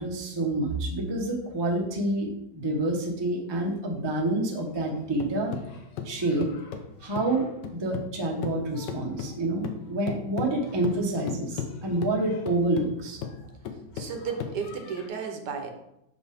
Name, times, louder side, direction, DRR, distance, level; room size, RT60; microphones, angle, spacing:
voice 1, 0.0-5.5 6.0-6.5 7.0-7.5 7.7-13.2, right 2 dB, 20° right, 0 dB, 0.6 m, -28 dB
sound 1, 4.7-8.2 8.4-15.1, left 7 dB, 75° left, 1.3 m, -37 dB
voice 2, 13.9-15.7, right 6 dB, 75° right, 5 dB, 1.4 m, -33 dB
6.2 x 4.9 x 3.4 m, 0.82 s
omnidirectional pair, 1.9 m